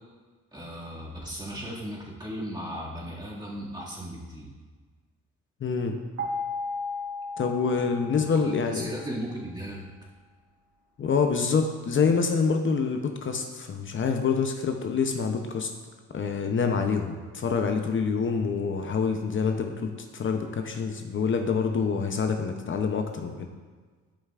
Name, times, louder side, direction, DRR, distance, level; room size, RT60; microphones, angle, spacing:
voice 1, 0.5-4.5 8.2-9.8, equal, 15° right, -5 dB, 2.1 m, -36 dB
voice 2, 5.6-5.9 7.4-8.9 11.0-15.7 16.1-23.5, left 5 dB, 40° left, 5 dB, 0.7 m, -26 dB
sound 1, 6.2-9.1, left 3 dB, 55° right, 1.6 m, -35 dB
11.5 x 5.6 x 2.4 m, 1.4 s
cardioid pair, 90°, 30 cm